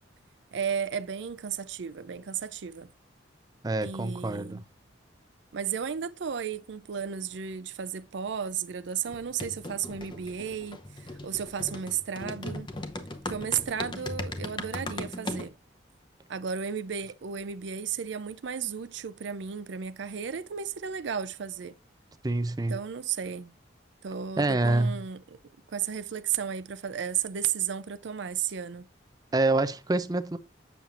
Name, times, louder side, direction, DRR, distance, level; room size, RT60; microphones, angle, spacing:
voice 1, 0.5-2.9 3.8-4.6 5.5-12.7 13.3-15.5 16.3-21.7 22.7-23.5 24.0-25.2 25.7-28.8, right 8 dB, 70° right, 0.5 m, -33 dB
voice 2, 3.6-4.6 22.2-22.8 24.4-25.0 29.3-30.4, right 2 dB, 20° right, 0.5 m, -26 dB
sound 1, 9.1-15.5, left 2 dB, 25° left, 0.8 m, -38 dB
7.4 x 7.1 x 2.5 m
head